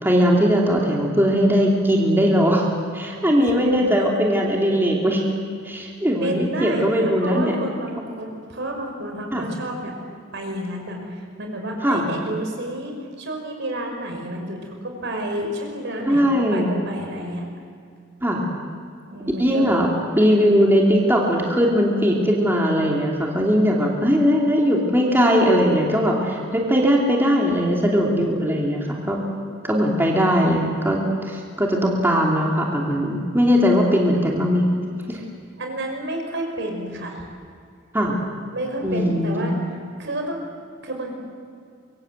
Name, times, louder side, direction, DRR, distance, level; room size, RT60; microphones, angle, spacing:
voice 1, 0.0-2.7 2.9-5.2 5.6-7.5 9.3-9.5 11.8-12.1 16.1-16.7 18.2-18.4 19.4-19.9 20.1-29.2 29.6-34.7 35.1-35.2 37.9-38.2 38.8-39.5, equal, 10° right, -2 dB, 3.0 m, -19 dB
voice 2, 3.5-4.2 6.2-10.0 10.3-17.5 19.0-19.8 35.1-35.3 35.6-37.3 38.5-39.6 40.0-40.5 40.8-41.1, right 1 dB, 60° right, 2 dB, 5.6 m, -30 dB
25.0 x 23.5 x 8.1 m, 2.3 s
head